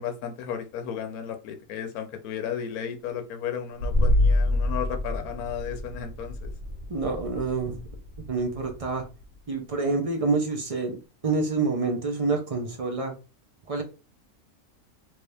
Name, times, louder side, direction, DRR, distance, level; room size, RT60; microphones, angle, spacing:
voice 1, 0.0-6.5, left 8 dB, 80° left, 1.1 m, -34 dB
sound 1, 3.8-9.4, left 1 dB, 60° right, 1.2 m, -27 dB
voice 2, 6.9-7.8 8.3-9.0 9.5-11.0 11.2-13.1 13.7-13.8, right 3 dB, 35° right, 0.5 m, -27 dB
3.2 x 2.7 x 3.3 m
omnidirectional pair, 1.6 m